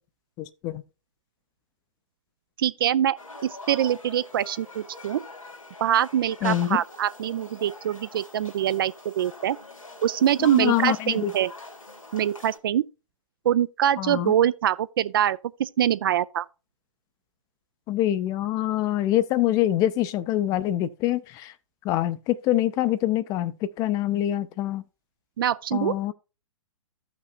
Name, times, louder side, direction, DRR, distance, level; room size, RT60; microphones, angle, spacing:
voice 1, 0.4-0.8 6.4-6.8 10.4-11.3 14.0-14.3 17.9-21.5 21.8-24.8 25.7-26.1, left 13 dB, 20° left, 0.5 m, -25 dB
voice 2, 2.6-5.2 5.8-9.6 10.0-11.5 12.1-12.8 13.4-16.5 25.4-25.9, right 10 dB, 45° right, 0.4 m, -24 dB
sound 1, 3.2-12.6, left 2 dB, 85° left, 2.3 m, -44 dB
14.5 x 6.0 x 2.4 m
figure-of-eight pair, 120°, 17 cm